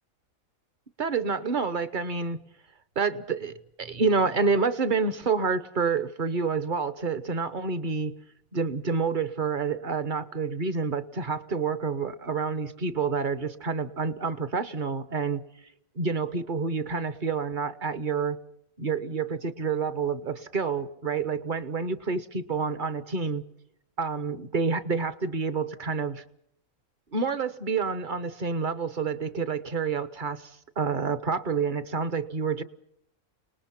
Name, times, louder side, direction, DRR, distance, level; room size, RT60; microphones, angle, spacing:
voice 1, 1.0-2.4 3.0-8.1 8.5-15.4 16.0-18.4 18.8-23.4 24.0-26.2 27.1-30.5 30.8-32.6, right 5 dB, 40° right, 14 dB, 1.1 m, -28 dB
29.5 x 20.0 x 6.0 m, 0.71 s
omnidirectional pair, 1.5 m